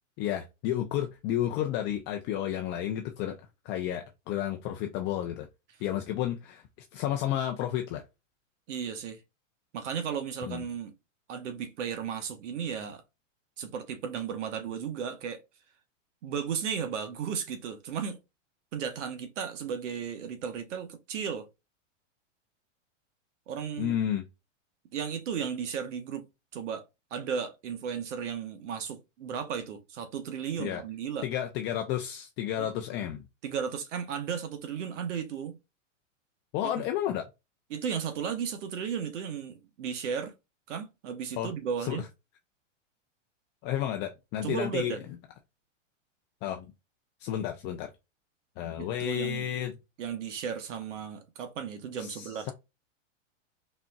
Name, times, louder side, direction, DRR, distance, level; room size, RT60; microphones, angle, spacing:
voice 1, 0.2-3.4 3.6-5.5 5.8-6.6 6.9-8.0 10.5-10.7 23.8-24.2 30.6-30.8 31.2-33.2 36.5-37.3 41.4-41.5 41.9-42.0 43.6-45.0 46.4-46.7 47.2-47.9 48.6-49.7 52.0-52.5, left 11 dB, 30° left, 0.5 m, -31 dB
voice 2, 8.7-9.2 9.7-10.9 11.3-13.0 13.6-15.4 16.2-18.2 18.7-21.5 23.5-24.0 24.9-26.2 26.5-26.8 27.1-31.3 32.6-32.7 33.4-35.6 36.6-36.7 37.7-40.3 40.7-42.0 44.4-45.0 48.8-49.5 50.0-52.5, right 7 dB, 70° right, 1.1 m, -35 dB
4.1 x 3.7 x 2.3 m
hypercardioid pair, 135°, 38 cm